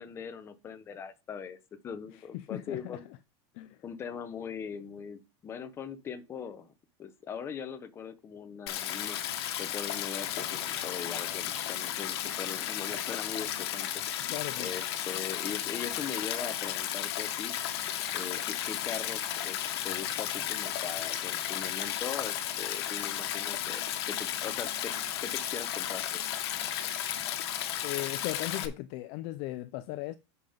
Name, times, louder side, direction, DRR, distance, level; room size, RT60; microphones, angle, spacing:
voice 1, 0.0-1.6 1.8-3.1 3.8-6.7 7.0-9.2 9.6-17.5 18.1-24.9 25.2-26.0, left 7 dB, 15° left, 0.9 m, -41 dB
voice 2, 2.1-3.0 3.5-3.8 14.3-14.7 27.8-30.2, left 17 dB, 40° left, 0.4 m, -37 dB
Stream, 8.7-28.7, left 11 dB, 65° left, 1.4 m, -34 dB
7.5 x 5.5 x 5.1 m
supercardioid pair, 170°, 15 cm